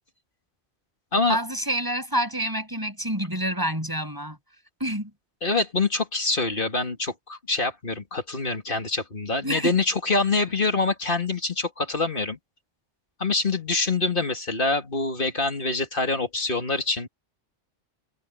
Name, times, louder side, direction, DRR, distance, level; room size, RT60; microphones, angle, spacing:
voice 1, 1.3-4.4 4.8-5.1 9.4-9.7, right 1 dB, 15° right, 6.9 m, -27 dB
voice 2, 5.4-12.4 13.2-17.1, left 3 dB, 45° left, 2.6 m, -25 dB
omnidirectional pair, 1.3 m